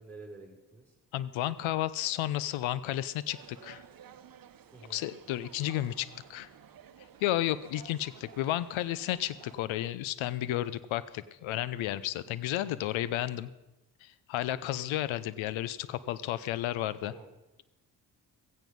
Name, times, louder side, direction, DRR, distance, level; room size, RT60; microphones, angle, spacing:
voice 1, 0.0-0.9 4.7-5.0 17.0-17.3, right 3 dB, 5° left, 0 dB, 6.2 m, -49 dB
voice 2, 1.1-3.8 4.9-6.5 7.2-13.5 14.0-17.1, left 13 dB, 75° left, 17 dB, 0.9 m, -32 dB
sound 1, 3.3-9.6, right 8 dB, 45° right, 1.1 m, -54 dB
16.0 x 15.0 x 5.4 m, 1.0 s
hypercardioid pair, 40°, 48 cm